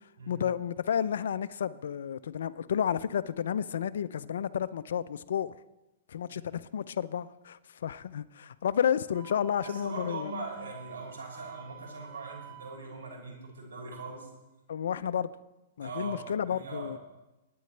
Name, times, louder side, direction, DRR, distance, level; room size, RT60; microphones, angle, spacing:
voice 1, 0.3-5.5 6.1-10.3 14.7-15.3 15.8-17.0, left 8 dB, 75° left, 0.5 m, -31 dB
Wind instrument woodwind instrument, 9.1-12.9, right 11 dB, 60° right, 3.1 m, -49 dB
voice 2, 9.6-14.3 15.8-17.0, right 3 dB, 80° right, 6.6 m, -41 dB
27.0 x 9.5 x 3.3 m
hypercardioid pair, 125°, 0 cm